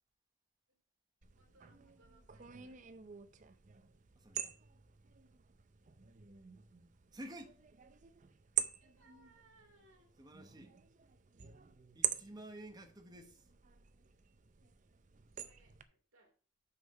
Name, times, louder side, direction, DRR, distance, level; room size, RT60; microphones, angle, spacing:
sound 1, 1.2-15.8, right 11 dB, 35° right, 0.5 m, -45 dB
voice 1, 1.4-2.8 8.8-10.1 15.2-16.3, right 2 dB, 90° right, 2.0 m, -68 dB
voice 2, 4.2-4.6 7.1-7.6 10.2-10.7 11.9-13.5, right 1 dB, 20° right, 0.9 m, -51 dB
6.3 x 5.5 x 5.4 m
head